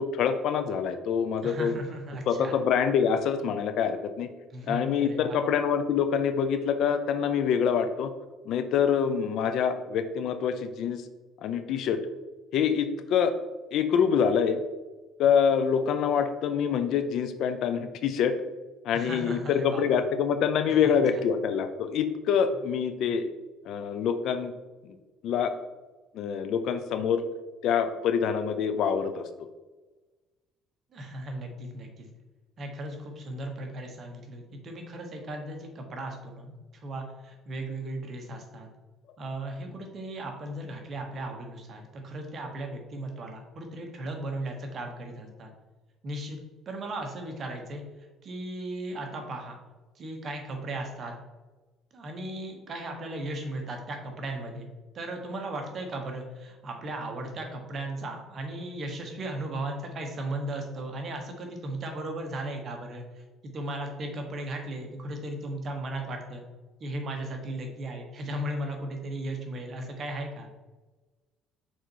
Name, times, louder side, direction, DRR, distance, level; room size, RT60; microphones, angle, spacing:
voice 1, 0.0-1.7 2.3-4.3 4.6-8.1 8.4-11.1 11.4-12.0 12.5-13.3 13.7-14.6 15.2-18.4 18.8-23.3 23.6-24.5 24.8-25.0 25.2-25.5 26.1-27.2 27.6-29.5, left 7 dB, 65° left, 9 dB, 0.6 m, -26 dB
voice 2, 1.4-2.5 4.5-5.4 18.9-19.8 20.7-21.2 30.9-32.0 32.6-38.7 39.2-45.5 46.0-46.4 46.6-47.8 48.2-49.6 49.9-51.1 51.9-54.7 54.9-63.2 63.5-66.4 66.8-70.5, right 1 dB, 40° right, 3 dB, 1.3 m, -36 dB
6.0 x 4.0 x 4.7 m, 1.2 s
cardioid pair, 130°, 0 cm